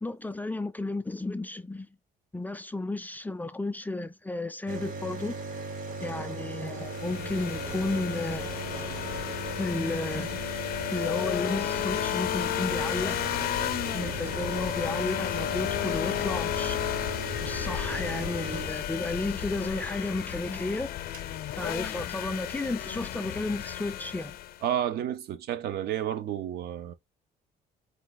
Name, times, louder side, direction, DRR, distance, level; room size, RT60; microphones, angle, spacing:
voice 1, 0.0-1.9 2.3-5.3 6.0-8.5 9.6-10.5 10.9-13.4 13.9-17.0 17.4-20.9 21.5-24.4, left 2 dB, 10° left, 0.4 m, -33 dB
sound 1, 4.7-19.3 20.6-20.7 20.9-21.3, right 3 dB, 50° right, 1.5 m, -38 dB
sound 2, 6.8-24.6, left 12 dB, 65° left, 0.5 m, -33 dB
voice 2, 24.6-26.9, right 11 dB, 70° right, 0.7 m, -31 dB
4.6 x 2.4 x 3.9 m
cardioid pair, 110°, 17 cm